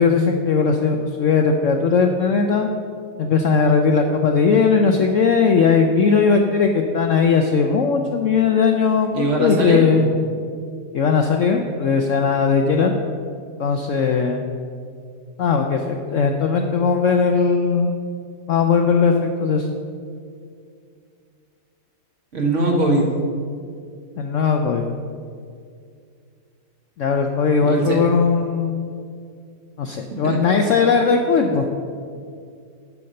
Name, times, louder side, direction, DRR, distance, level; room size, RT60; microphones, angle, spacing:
voice 1, 0.0-2.7 3.2-10.1 10.9-12.9 13.6-14.4 15.4-17.9 18.5-19.7 24.2-24.8 27.0-28.9 29.8-31.6, left 5 dB, 65° left, 4 dB, 0.7 m, -18 dB
voice 2, 9.1-10.0 22.3-23.1 27.6-28.0 30.2-30.4, right 1 dB, 45° right, 0 dB, 1.7 m, -20 dB
9.5 x 5.9 x 6.4 m, 2.3 s
omnidirectional pair, 1.8 m